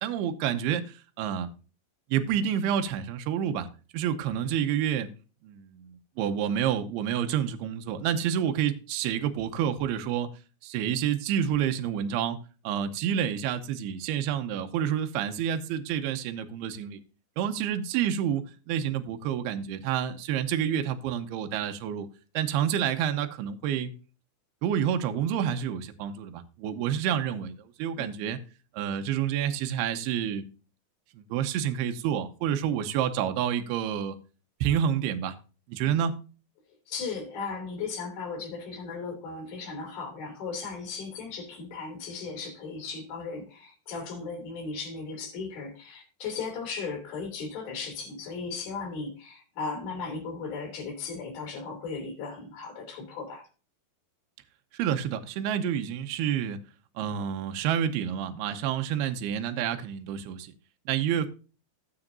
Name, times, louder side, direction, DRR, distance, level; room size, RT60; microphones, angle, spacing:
voice 1, 0.0-1.5 2.1-3.7 3.9-5.1 5.4-10.3 10.6-12.4 12.6-17.0 17.4-22.1 22.3-23.9 24.6-28.4 28.7-30.5 31.2-34.2 34.6-35.4 35.7-36.2 54.7-56.6 57.0-60.5 60.9-61.3, right 9 dB, 75° right, 2.7 m, -29 dB
voice 2, 36.9-53.5, left 4 dB, 50° left, 4.1 m, -36 dB
16.0 x 7.1 x 2.5 m
omnidirectional pair, 5.0 m